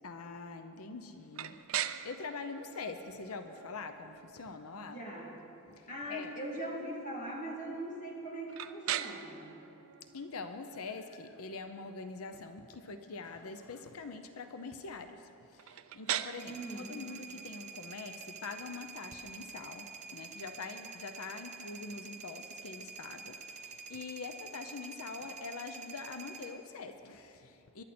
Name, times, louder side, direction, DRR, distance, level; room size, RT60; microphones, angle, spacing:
voice 1, 0.0-5.0 5.7-6.3 10.1-27.8, left 4 dB, 80° left, 8 dB, 0.7 m, -44 dB
sound 1, 1.3-21.1, right 11 dB, 70° right, 0.5 m, -44 dB
voice 2, 4.7-5.4 5.9-9.6 16.4-16.9, right 1 dB, 35° left, -2 dB, 2.6 m, -41 dB
sound 2, 16.4-26.5, right 5 dB, 35° right, 1.1 m, -47 dB
23.0 x 11.5 x 4.3 m, 2.8 s
head